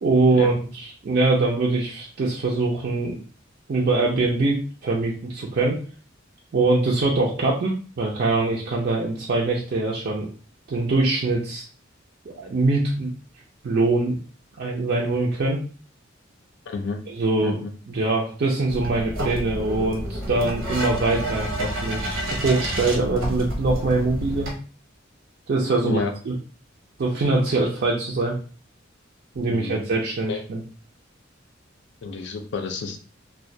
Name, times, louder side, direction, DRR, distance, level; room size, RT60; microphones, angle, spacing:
voice 1, 0.0-3.2 3.7-5.8 6.5-10.3 10.7-11.6 12.3-13.1 13.6-14.2 14.6-15.6 17.1-17.6 17.9-24.5 25.5-26.3 27.0-28.3 29.4-30.6, right 3 dB, 50° right, -3 dB, 0.4 m, -23 dB
voice 2, 16.7-17.0 17.4-17.7 25.8-26.1 29.5-29.8 30.3-30.4 32.0-33.0, left 4 dB, 60° left, 5 dB, 0.4 m, -30 dB
sound 1, 18.7-24.5, equal, 75° right, 0.8 m, -29 dB
2.2 x 2.1 x 2.6 m, 0.39 s
head